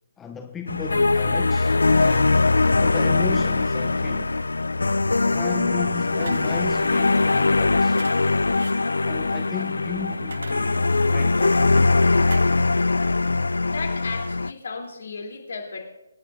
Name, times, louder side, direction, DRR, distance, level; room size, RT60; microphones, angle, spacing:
voice 1, 0.2-2.5 2.8-4.4 5.3-8.0 9.0-11.8, left 8 dB, 10° left, 0.5 m, -35 dB
sound 1, 0.7-14.5, left 3 dB, 75° left, 0.3 m, -21 dB
sound 2, 6.2-6.5 7.9-8.2 8.5-8.8 10.1-11.0 12.2-12.4, right 4 dB, 65° right, 0.7 m, -38 dB
voice 2, 13.6-15.9, left 4 dB, 60° left, 2.9 m, -34 dB
26.0 x 9.9 x 2.5 m
figure-of-eight pair, 145°, 0 cm